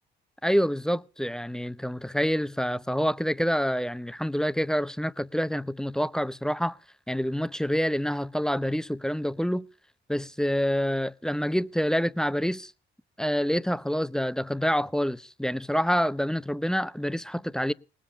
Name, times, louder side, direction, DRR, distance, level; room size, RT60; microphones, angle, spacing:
voice 1, 0.4-6.8 7.1-9.7 10.1-12.7 13.2-17.7, equal, 5° left, 0.7 m, -27 dB
19.0 x 7.5 x 7.8 m
cardioid pair, 90°, 20 cm